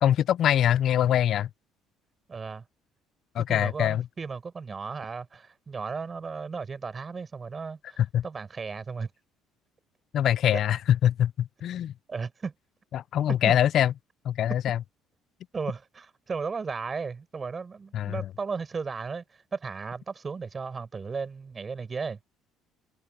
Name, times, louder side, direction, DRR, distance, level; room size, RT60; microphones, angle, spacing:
voice 1, 0.0-1.5 3.3-4.0 8.0-8.2 10.1-11.9 12.9-13.9 14.2-14.8 17.9-18.2, left 10 dB, 50° left, 0.3 m, -24 dB
voice 2, 2.3-2.7 3.5-9.1 12.1-12.5 13.3-13.5 15.5-22.2, right 5 dB, 25° right, 5.0 m, -35 dB
cardioid pair, 140°, 0 cm